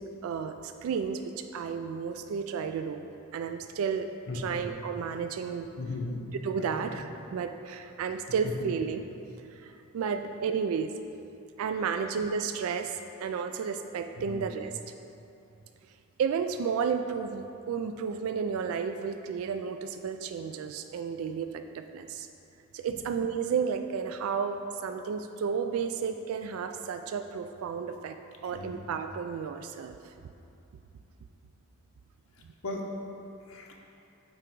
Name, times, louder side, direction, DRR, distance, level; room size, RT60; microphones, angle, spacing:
voice 1, 0.0-3.1 3.3-4.1 4.3-5.7 6.4-9.1 9.5-11.0 11.6-14.7 16.2-22.3 22.7-30.1, right 6 dB, 80° right, 8 dB, 0.3 m, -32 dB
voice 2, 5.8-6.2 6.7-6.9 8.4-8.7 11.9-12.0 14.2-14.4 22.9-23.0 28.5-28.7 32.6-32.8 33.5-33.7, left 2 dB, 75° left, 0 dB, 0.9 m, -36 dB
8.6 x 3.4 x 4.6 m, 2.7 s
head